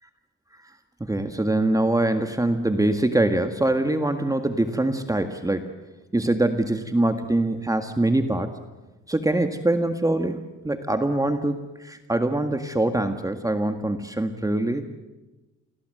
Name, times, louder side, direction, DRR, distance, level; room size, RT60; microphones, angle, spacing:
voice 1, 1.0-5.7 6.1-8.6 9.1-14.8, right 1 dB, 10° right, 7 dB, 1.8 m, -24 dB
28.0 x 22.0 x 7.9 m, 1.1 s
cardioid pair, 90°, 30 cm